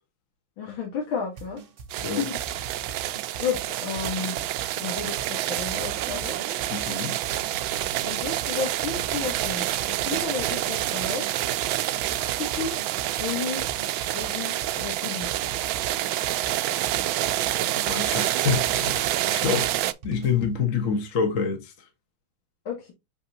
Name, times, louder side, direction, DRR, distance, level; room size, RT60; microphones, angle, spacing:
voice 1, 0.6-1.6 1.9-2.4 3.4-4.4 4.8-6.4 8.1-11.2 12.4-12.7 13.2-13.6 14.1-15.3 22.7-22.9, left 6 dB, 85° left, 2.3 m, -32 dB
sound 1, 1.4-20.6, right 4 dB, 60° right, 0.5 m, -42 dB
sound 2, 1.9-19.9, right 14 dB, 80° right, 1.3 m, -28 dB
voice 2, 6.7-7.2 17.7-19.7 20.0-21.9, left 6 dB, 45° left, 1.5 m, -27 dB
6.3 x 5.6 x 2.7 m
omnidirectional pair, 2.2 m